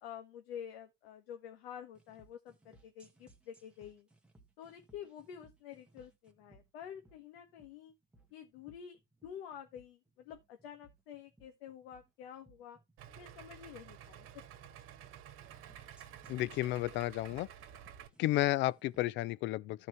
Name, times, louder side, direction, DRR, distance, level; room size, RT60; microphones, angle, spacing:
voice 1, 0.0-4.1 4.6-7.9 8.3-12.8 13.2-14.3, left 9 dB, 85° left, 1.5 m, -49 dB
sound 1, 1.9-19.2, right 2 dB, 5° right, 1.7 m, -65 dB
Idling, 13.0-18.1, right 10 dB, 45° right, 1.9 m, -52 dB
voice 2, 16.3-17.5 18.2-19.9, left 16 dB, 40° left, 0.4 m, -32 dB
14.0 x 4.8 x 3.1 m
supercardioid pair, 120°, 29 cm